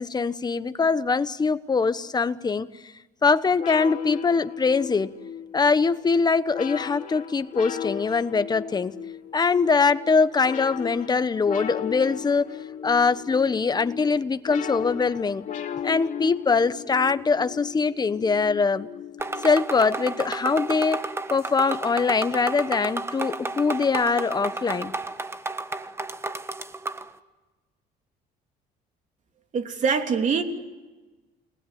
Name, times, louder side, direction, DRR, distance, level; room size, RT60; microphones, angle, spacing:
voice 1, 0.0-2.7 3.2-5.1 5.5-9.0 9.3-15.5 15.8-18.9 19.4-24.9, left 4 dB, 25° left, 13 dB, 1.1 m, -23 dB
sound 1, 3.6-19.8, left 8 dB, 50° left, 2.7 m, -36 dB
sound 2, 19.2-27.1, right 2 dB, 15° right, 1.4 m, -32 dB
voice 2, 29.5-30.4, right 5 dB, 45° right, 5 dB, 3.3 m, -23 dB
30.0 x 20.0 x 9.3 m, 1.2 s
cardioid pair, 110°, 17 cm